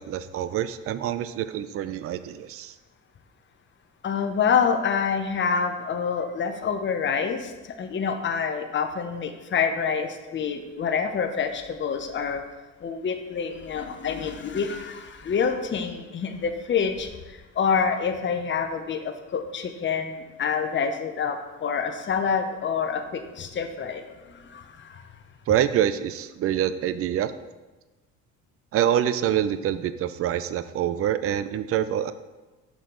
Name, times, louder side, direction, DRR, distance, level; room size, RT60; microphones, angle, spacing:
voice 1, 0.0-2.7 25.5-27.3 28.7-32.1, right 10 dB, 40° right, 13 dB, 0.4 m, -26 dB
voice 2, 4.0-7.5 7.8-12.4 12.8-25.0, left 6 dB, 30° left, 6 dB, 0.7 m, -27 dB
6.0 x 5.1 x 3.8 m, 1.2 s
supercardioid pair, 75°, 37 cm